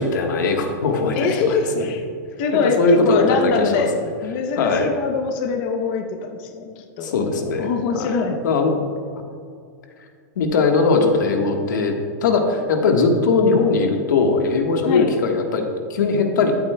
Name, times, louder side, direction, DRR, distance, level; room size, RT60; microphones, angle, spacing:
voice 1, 0.0-1.8 2.5-3.9 4.6-4.9 7.0-8.1 8.4-8.8 10.4-11.9 12.2-16.6, left 4 dB, 85° left, 3 dB, 1.4 m, -20 dB
voice 2, 1.1-2.0 2.4-3.9 4.2-7.1 7.6-8.4 14.8-15.1, left 5 dB, 35° left, 4 dB, 0.7 m, -23 dB
13.0 x 8.6 x 2.2 m, 2.3 s
supercardioid pair, 170°, 10 cm